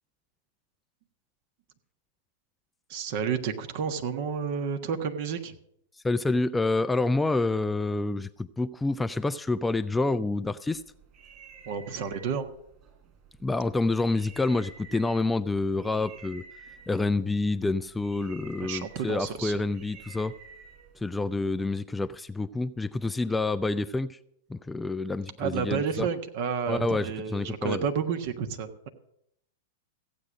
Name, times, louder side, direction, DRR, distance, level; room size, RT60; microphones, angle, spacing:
voice 1, 2.9-5.5 11.7-12.5 18.6-19.6 25.4-28.9, right 6 dB, 50° right, 8 dB, 1.4 m, -31 dB
voice 2, 6.0-10.8 13.4-16.4 16.9-20.3 21.0-24.2 24.5-26.1 26.7-27.8, left 2 dB, 10° left, 13 dB, 0.4 m, -28 dB
sound 1, 10.7-21.3, right 5 dB, 30° right, 5.2 m, -51 dB
15.0 x 8.6 x 6.3 m, 0.75 s
figure-of-eight pair, 100°, 0 cm